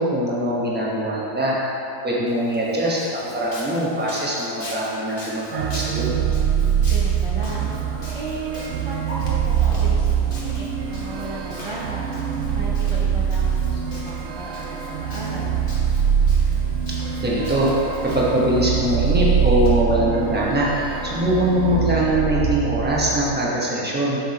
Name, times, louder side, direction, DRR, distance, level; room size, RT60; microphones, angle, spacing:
voice 1, 0.0-1.6 2.0-6.1 17.2-17.7 18.0-20.7 21.0-24.2, equal, 10° right, -6 dB, 0.9 m, -22 dB
Walk footsteps, 2.3-19.7, left 1 dB, 35° left, 1.2 m, -41 dB
sound 1, 5.5-23.4, right 8 dB, 70° right, 0.7 m, -23 dB
voice 2, 6.5-7.6 8.1-12.1 12.5-15.6 21.1-21.4, right 1 dB, 30° right, -6 dB, 0.5 m, -35 dB
6.9 x 6.1 x 4.2 m, 2.9 s
omnidirectional pair, 1.7 m